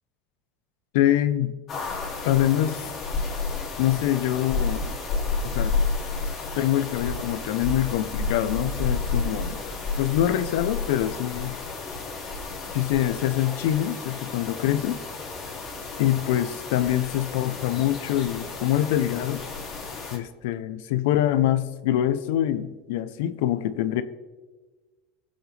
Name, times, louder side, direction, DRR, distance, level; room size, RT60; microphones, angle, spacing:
voice 1, 0.9-1.5 2.2-2.8 3.8-4.9 5.4-5.7 6.5-9.6 10.0-11.6 12.7-15.0 16.0-19.4 20.1-24.0, left 12 dB, 75° left, 12 dB, 0.8 m, -24 dB
sound 1, 1.7-20.2, left 4 dB, 30° left, 2.9 m, -31 dB
22.0 x 7.8 x 3.4 m, 1.3 s
supercardioid pair, 145°, 0 cm